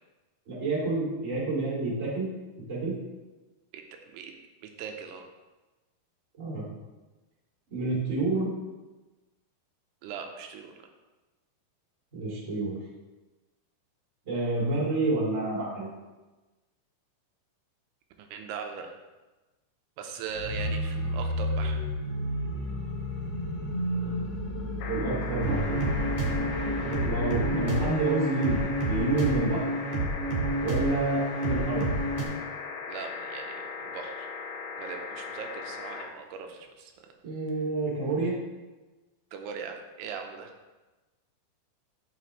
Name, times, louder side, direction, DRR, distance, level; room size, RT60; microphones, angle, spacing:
voice 1, 0.5-2.3 2.7-2.9 6.4-6.7 7.7-8.5 12.1-12.8 14.2-15.9 24.9-25.8 27.0-29.6 30.6-31.9 37.2-38.4, right 2 dB, 30° right, -6 dB, 1.6 m, -28 dB
voice 2, 4.6-5.3 10.0-10.9 18.2-18.9 20.0-21.8 32.9-34.3 34.8-37.1 39.3-40.5, right 6 dB, 85° right, 4 dB, 2.7 m, -40 dB
sound 1, 20.3-28.0, equal, 20° left, 2.2 m, -32 dB
sound 2, 24.8-36.0 37.5-37.6, left 5 dB, 85° left, 2.9 m, -39 dB
sound 3, 25.4-32.2, right 1 dB, 50° right, 2.3 m, -29 dB
9.1 x 6.9 x 3.1 m, 1.2 s
omnidirectional pair, 4.7 m